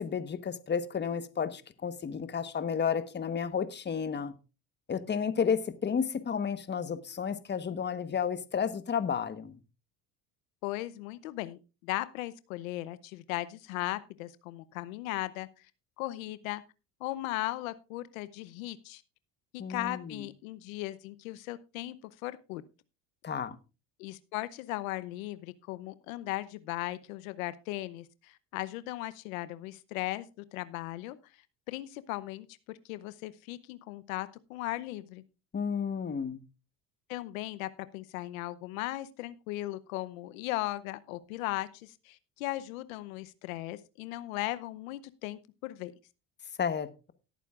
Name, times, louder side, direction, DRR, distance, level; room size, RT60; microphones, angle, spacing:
voice 1, 0.0-4.3 4.9-9.5 19.6-20.2 23.2-23.6 35.5-36.4 46.6-47.1, left 7 dB, 25° left, 1.2 m, -32 dB
voice 2, 10.6-15.7 16.0-16.6 17.0-19.0 19.7-22.0 22.2-22.6 24.0-31.2 31.7-35.2 37.1-45.9, left 17 dB, 90° left, 0.8 m, -37 dB
18.0 x 9.2 x 2.4 m
supercardioid pair, 95°, 40 cm